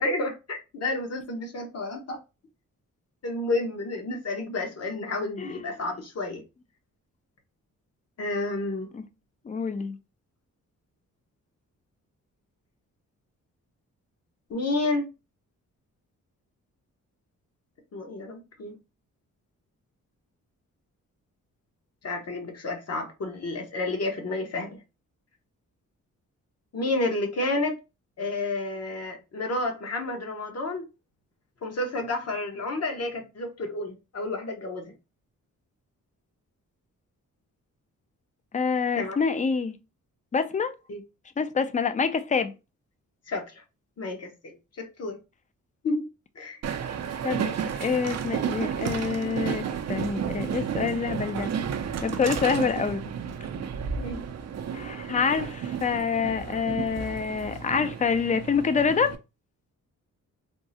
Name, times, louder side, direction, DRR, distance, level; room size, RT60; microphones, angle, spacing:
voice 1, 0.0-2.2 3.2-6.4 8.2-8.9 14.5-15.1 17.9-18.7 22.0-24.8 26.7-27.8 28.2-30.8 31.6-34.8 39.0-39.2 40.9-41.0 43.3-43.6 44.0-45.2 45.8-46.1 46.4-46.6 54.0-54.2, left 2 dB, 50° left, 1.0 m, -30 dB
voice 2, 5.4-5.7 8.9-9.0 9.4-10.0 38.5-39.7 40.3-40.7 41.4-42.5 47.2-47.5 47.8-51.5 52.0-53.0 54.7-59.1, left 5 dB, 25° left, 0.4 m, -26 dB
Train, 46.6-59.2, right 7 dB, 55° right, 0.5 m, -32 dB
3.5 x 2.0 x 2.7 m
cardioid pair, 95°, 32 cm